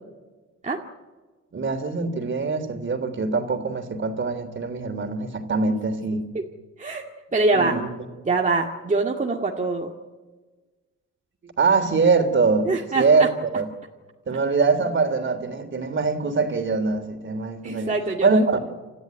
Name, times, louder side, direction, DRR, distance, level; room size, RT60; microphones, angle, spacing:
voice 1, 1.5-6.2 7.5-7.9 11.4-13.3 13.5-13.7 14.3-18.0 18.2-18.6, right 4 dB, 40° right, 7 dB, 3.4 m, -23 dB
voice 2, 6.1-6.4 6.8-7.0 7.3-7.8 8.2-9.9 12.6-13.3 17.6-18.5, right 3 dB, 25° right, 0 dB, 2.1 m, -24 dB
28.5 x 14.5 x 9.7 m, 1.3 s
cardioid pair, 90°, 30 cm